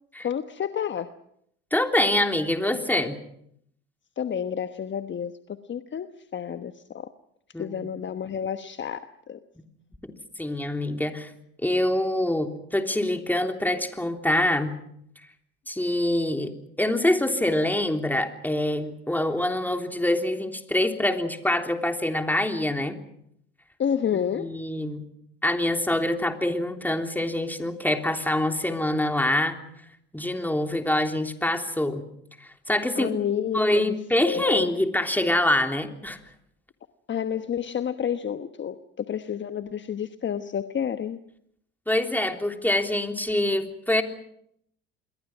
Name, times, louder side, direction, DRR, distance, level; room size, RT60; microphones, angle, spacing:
voice 1, 0.2-1.1 4.2-5.3 5.7-7.1 7.6-9.0 9.3-9.4 23.8-24.5 33.0-33.9 34.2-34.7 37.1-41.2, left 8 dB, 35° left, 9 dB, 1.2 m, -29 dB
voice 2, 1.7-3.2 7.5-7.9 10.4-11.3 11.6-14.8 15.7-16.5 16.8-23.0 24.3-25.1 25.4-29.6 30.1-32.1 32.4-33.1 33.5-36.2 41.9-44.0, left 1 dB, 5° left, 4 dB, 3.4 m, -25 dB
27.5 x 22.5 x 6.1 m, 0.73 s
hypercardioid pair, 65°, 33 cm